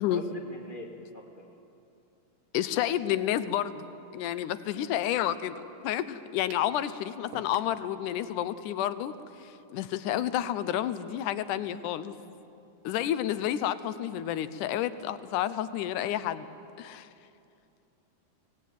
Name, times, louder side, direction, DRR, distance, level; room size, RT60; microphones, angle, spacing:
voice 1, 0.1-1.4, equal, 40° right, 0 dB, 0.7 m, -42 dB
voice 2, 2.5-3.8 4.1-12.1 12.8-16.5 16.8-17.1, left 11 dB, 80° left, 13 dB, 2.2 m, -30 dB
sound 1, 6.5-6.7 7.3-7.8, right 6 dB, 80° right, 1.1 m, -47 dB
24.0 x 18.5 x 9.3 m, 2.7 s
omnidirectional pair, 3.8 m